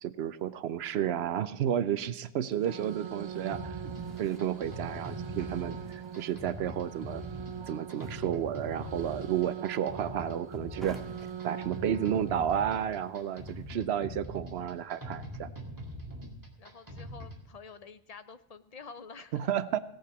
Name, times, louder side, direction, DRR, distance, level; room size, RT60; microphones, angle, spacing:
voice 1, 0.0-3.9 4.2-7.2 7.7-11.0 11.4-15.5 19.3-19.8, right 9 dB, 90° right, 14 dB, 0.9 m, -32 dB
sound 1, 2.5-12.5, right 8 dB, 40° right, 0.5 m, -42 dB
sound 2, 3.3-13.7, right 1 dB, ahead, 1.6 m, -57 dB
sound 3, 3.5-17.4, equal, 20° right, 2.1 m, -43 dB
voice 2, 16.6-19.5, left 5 dB, 45° left, 11 dB, 0.7 m, -48 dB
17.0 x 8.6 x 6.0 m, 0.84 s
omnidirectional pair, 1.0 m